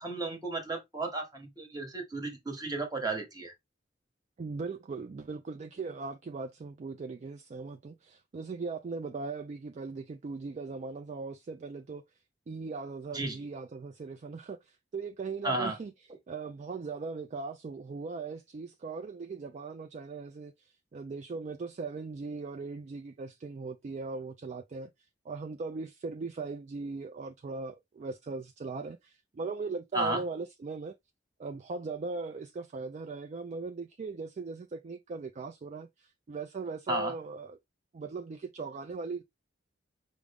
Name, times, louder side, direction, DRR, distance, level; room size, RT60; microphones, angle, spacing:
voice 1, 0.0-3.5 13.1-13.4 15.4-15.8 29.9-30.2 36.9-37.1, right 2 dB, 20° right, 1.1 m, -33 dB
voice 2, 4.4-12.0 12.5-15.9 16.3-24.9 25.2-30.9 31.4-37.6 37.9-39.2, right 4 dB, 40° right, 0.3 m, -39 dB
4.9 x 2.0 x 3.4 m
head